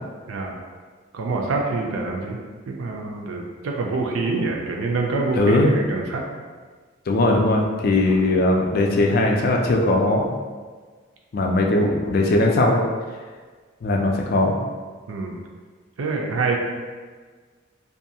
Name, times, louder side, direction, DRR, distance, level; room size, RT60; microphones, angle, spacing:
voice 1, 1.1-2.4 2.7-6.2 8.0-8.2 15.1-15.4 16.0-16.6, right 3 dB, 85° right, 0 dB, 0.4 m, -26 dB
voice 2, 5.4-5.7 7.1-10.3 11.3-12.8 13.8-14.5, left 2 dB, 45° left, 1 dB, 0.3 m, -19 dB
2.6 x 2.3 x 2.7 m, 1.5 s
head